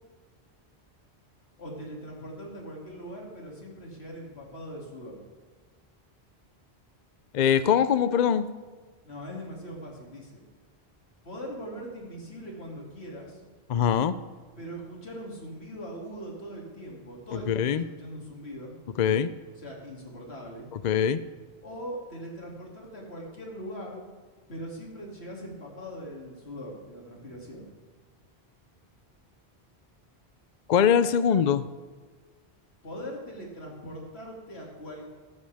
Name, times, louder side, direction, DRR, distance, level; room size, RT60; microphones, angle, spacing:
voice 1, 1.6-5.2 9.0-10.4 11.2-13.4 14.6-18.7 19.6-20.7 21.6-24.0 24.5-27.7 32.8-35.1, equal, 70° left, -1 dB, 2.9 m, -41 dB
voice 2, 7.3-8.5 13.7-14.1 17.5-17.8 19.0-19.3 20.8-21.2 30.7-31.7, left 8 dB, 55° left, 14 dB, 0.5 m, -22 dB
14.5 x 12.0 x 3.5 m, 1.4 s
omnidirectional pair, 1.1 m